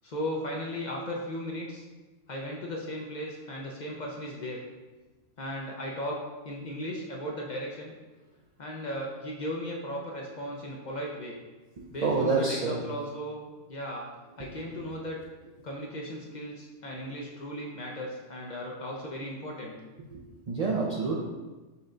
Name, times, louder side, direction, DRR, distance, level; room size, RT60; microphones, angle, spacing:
voice 1, 0.0-1.8 2.3-4.6 5.4-6.2 6.4-7.9 8.6-11.4 11.9-14.1 14.4-15.2 15.6-19.7, equal, 50° left, -1 dB, 0.6 m, -36 dB
voice 2, 11.8-12.9 20.1-21.2, right 4 dB, 55° right, -2 dB, 0.4 m, -28 dB
5.6 x 2.2 x 3.7 m, 1.2 s
omnidirectional pair, 1.2 m